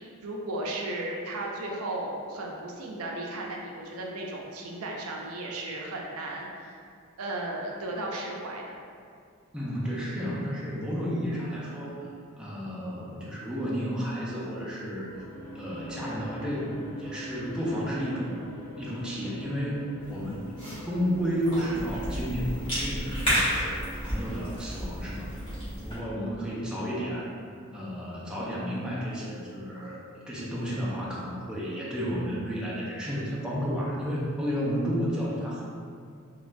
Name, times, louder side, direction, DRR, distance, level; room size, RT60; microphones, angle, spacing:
voice 1, 0.0-6.8 7.2-8.8, right 2 dB, 70° right, -1 dB, 0.4 m, -35 dB
voice 2, 9.5-12.1 12.4-15.1 15.5-18.4 18.8-19.8 20.1-20.6 20.8-23.8 24.0-25.5 25.8-27.3 27.7-30.0 30.3-35.6, equal, 5° right, -7 dB, 0.4 m, -32 dB
sound 1, 15.1-27.1, equal, 80° left, 0.7 m, -44 dB
Cough / Chewing mastication, 20.0-26.0, equal, 25° left, 1.2 m, -32 dB
3.1 x 2.2 x 2.5 m, 2.2 s
head